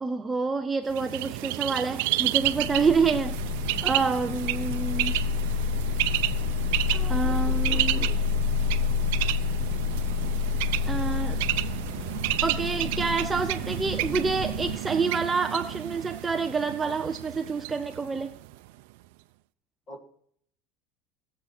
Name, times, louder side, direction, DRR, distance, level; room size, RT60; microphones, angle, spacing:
voice 1, 0.0-3.3 3.8-5.2 6.9-8.1 10.8-11.4 12.4-18.4, right 4 dB, 10° right, 0.4 m, -28 dB
Bird, 0.9-18.7, right 18 dB, 70° right, 0.5 m, -31 dB
sound 1, 2.4-14.8, left 7 dB, 60° left, 0.5 m, -29 dB
voice 2, 7.2-8.2 19.9-20.1, equal, 20° left, 1.7 m, -43 dB
17.0 x 7.8 x 5.8 m
cardioid pair, 180°, 0 cm